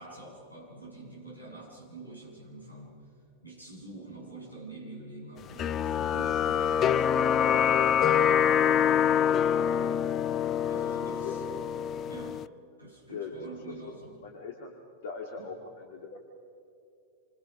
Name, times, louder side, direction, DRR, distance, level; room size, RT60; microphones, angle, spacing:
voice 1, 0.0-2.9 3.4-8.2 8.5-8.7 10.6-11.4 12.1-12.4 12.8-14.2 15.4-15.5, right 2 dB, 85° left, -4 dB, 7.8 m, -46 dB
sound 1, 5.6-12.5, left 8 dB, 30° left, 0.5 m, -25 dB
voice 2, 11.2-11.6 13.1-13.3 13.9-14.0 14.2-14.8 15.0-16.2, left 5 dB, 55° left, 3 dB, 2.2 m, -40 dB
28.0 x 26.5 x 5.1 m, 2.6 s
figure-of-eight pair, 90°, 0 cm